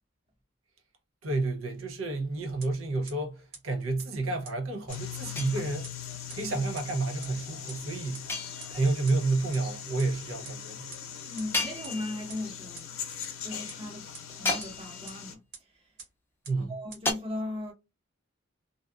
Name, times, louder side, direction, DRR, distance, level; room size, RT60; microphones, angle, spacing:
voice 1, 1.2-5.9 6.3-8.3 8.7-10.9 16.5-16.8, right 3 dB, 80° right, 0.6 m, -30 dB
sound 1, 2.6-2.7 3.1-3.2 3.5-3.6 4.0-4.1 4.4-4.5 4.9-5.0 5.4-5.5 5.8-5.9 6.3-6.4 6.8-6.9 7.2-7.3 7.7-7.8 8.1-8.2 8.6-8.7 9.1-9.2 9.5-9.6 10.0-10.1 10.4-10.5 10.9-11.0 11.4-11.5 11.8-11.9 12.3-12.4 12.8-12.9 13.2-13.3 13.7-13.8 14.1-14.2 14.6-14.7 15.1-15.2 15.5-15.6 16.0-16.1 16.4-16.5 16.9-17.0, right 4 dB, 50° right, 1.1 m, -43 dB
sound 2, 4.9-15.3, left 9 dB, 90° left, 0.6 m, -41 dB
sound 3, 5.4-6.1 8.3-9.1 11.5-12.5 14.4-15.2 17.1-17.2, left 2 dB, 10° left, 0.4 m, -33 dB
voice 2, 11.3-12.9 13.4-15.9 16.5-17.7, left 2 dB, 25° right, 0.9 m, -38 dB
2.6 x 2.3 x 2.3 m
head